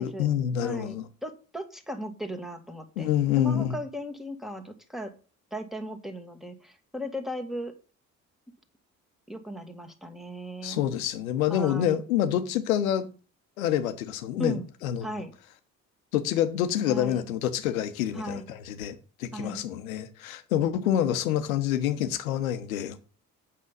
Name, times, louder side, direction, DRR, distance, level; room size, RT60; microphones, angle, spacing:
voice 1, 0.0-1.0 3.0-3.7 10.6-13.1 13.6-15.1 16.1-23.0, left 10 dB, 75° left, 1.0 m, -27 dB
voice 2, 0.6-3.1 3.4-5.1 5.5-7.7 9.3-10.8 11.5-12.0 14.4-14.7 15.0-15.3 16.9-17.3 18.1-18.5 19.3-19.6, equal, ahead, 1.8 m, -37 dB
8.5 x 5.5 x 5.3 m
figure-of-eight pair, 45°, 42 cm